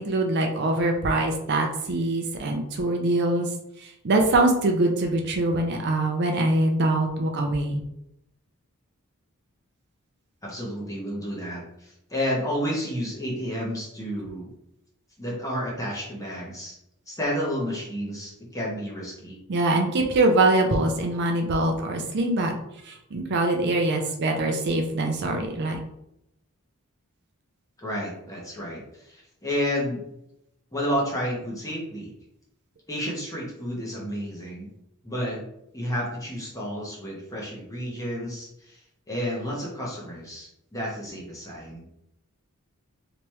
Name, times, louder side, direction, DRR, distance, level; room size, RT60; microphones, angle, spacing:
voice 1, 0.0-3.5 3.8-7.8 19.5-22.6 22.8-25.8, right 2 dB, 50° right, 2 dB, 0.5 m, -23 dB
voice 2, 10.4-14.5 15.2-16.8 17.1-19.4 27.8-30.0 30.7-32.1 32.9-34.7 35.0-35.4 35.7-38.8 39.1-41.9, equal, 15° left, -4 dB, 1.0 m, -31 dB
3.3 x 3.0 x 3.0 m, 0.81 s
head